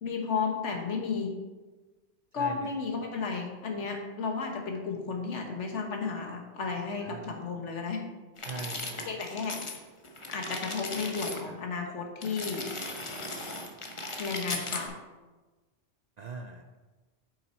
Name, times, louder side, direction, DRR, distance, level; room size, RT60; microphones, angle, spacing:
voice 1, 0.0-1.3 2.3-8.0 9.0-9.6 10.3-12.7 14.2-14.9, left 5 dB, 80° left, 2 dB, 1.5 m, -33 dB
voice 2, 2.4-2.8 7.0-7.3 8.5-9.1 11.4-11.6 16.2-16.8, right 3 dB, 55° right, 4 dB, 0.5 m, -41 dB
sound 1, 8.4-9.8 10.0-11.4 12.2-14.9, left 2 dB, 30° left, 0.8 m, -37 dB
7.4 x 5.8 x 4.3 m, 1.3 s
omnidirectional pair, 1.2 m